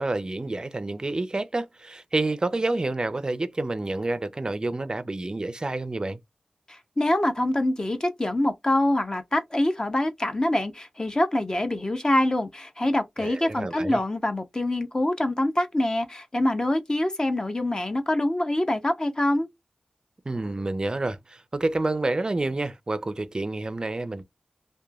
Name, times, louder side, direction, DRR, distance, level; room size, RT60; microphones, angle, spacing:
voice 1, 0.0-6.2 13.2-14.0 20.3-24.2, right 2 dB, 35° right, 0.4 m, -28 dB
voice 2, 6.7-19.5, left 1 dB, 30° left, 0.6 m, -25 dB
2.9 x 2.2 x 2.3 m
wide cardioid pair, 60°, 2 cm